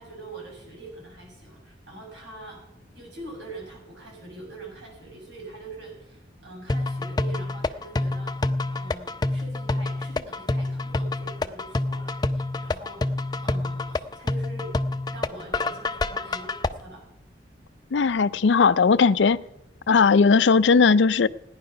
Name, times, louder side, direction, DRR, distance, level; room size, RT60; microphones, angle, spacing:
voice 1, 0.0-2.6 2.9-8.5 8.7-14.7 15.1-17.1, right 2 dB, 80° right, 7.5 m, -43 dB
sound 1, 6.7-16.7, left 2 dB, 25° left, 0.5 m, -27 dB
voice 2, 17.9-19.4 19.9-21.3, left 5 dB, 80° left, 0.5 m, -18 dB
16.5 x 10.5 x 5.8 m
head